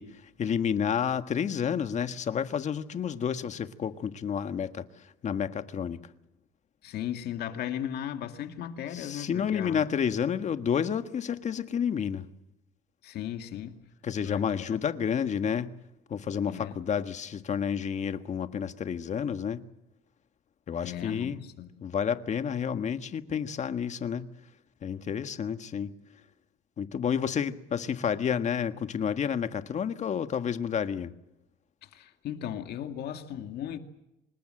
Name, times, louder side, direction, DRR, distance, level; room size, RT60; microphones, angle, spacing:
voice 1, 0.0-6.0 8.9-12.3 14.0-15.7 16.1-19.6 20.7-21.4 21.8-24.3 24.8-25.9 26.8-31.1, left 7 dB, 45° left, 1.6 m, -30 dB
voice 2, 6.8-9.8 13.0-13.8 14.3-14.8 16.4-16.8 20.8-21.7 31.8-33.8, left 10 dB, 70° left, 2.2 m, -36 dB
26.0 x 21.0 x 7.7 m
cardioid pair, 110°, 17 cm